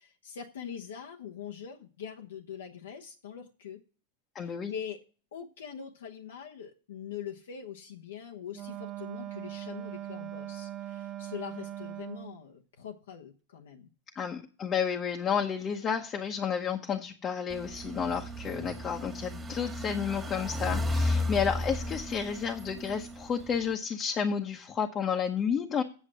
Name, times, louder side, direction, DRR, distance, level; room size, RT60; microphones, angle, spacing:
voice 1, 0.0-3.8 4.4-5.0 5.3-13.9, left 8 dB, 85° left, 0 dB, 1.1 m, -43 dB
voice 2, 4.3-4.7 14.1-25.8, left 7 dB, 25° left, 1 dB, 1.0 m, -31 dB
Wind instrument woodwind instrument, 8.5-12.4, right 13 dB, 35° right, 0.7 m, -40 dB
sound 1, 17.5-23.7, left 1 dB, 10° right, 1.7 m, -34 dB
8.4 x 7.3 x 6.1 m, 0.39 s
hypercardioid pair, 125°, 0 cm